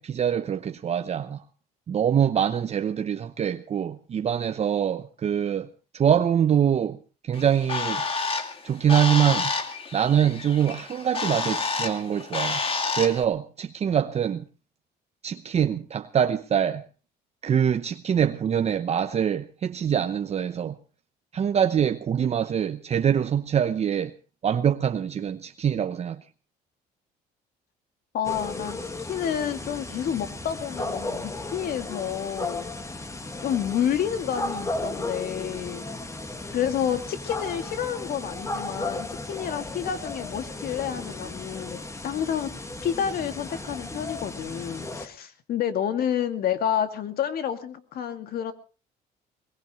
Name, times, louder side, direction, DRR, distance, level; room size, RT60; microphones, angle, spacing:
voice 1, 0.0-1.4 1.9-5.7 5.9-7.0 7.2-8.0 8.6-9.5 9.9-12.6 13.0-14.4 15.2-16.8 17.4-20.8 21.3-24.1 24.4-26.2, right 9 dB, 40° right, 0.8 m, -24 dB
Bird, 7.3-13.2, left 4 dB, 35° left, 2.2 m, -29 dB
voice 2, 28.1-32.7 33.4-35.9 36.5-42.5 42.8-48.5, left 9 dB, 65° left, 2.3 m, -29 dB
sound 1, 28.2-45.1, left 2 dB, 15° left, 1.8 m, -35 dB
21.5 x 20.0 x 3.1 m
cardioid pair, 110°, 17 cm